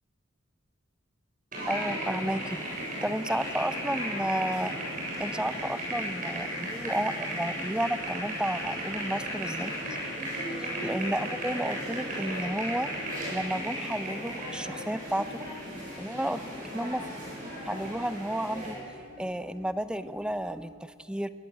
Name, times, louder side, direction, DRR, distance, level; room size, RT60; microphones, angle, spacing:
sound 1, 1.5-18.7, right 1 dB, 40° right, 7.9 m, -35 dB
sound 2, 1.7-20.7, left 1 dB, 45° left, 5.0 m, -53 dB
voice 1, 1.7-2.6 3.0-4.7 5.2-9.7 10.8-12.9 13.3-15.5 16.0-17.2 17.7-18.8 19.2-21.3, right 1 dB, 5° right, 13 dB, 0.6 m, -32 dB
21.5 x 19.5 x 8.9 m, 2.5 s
head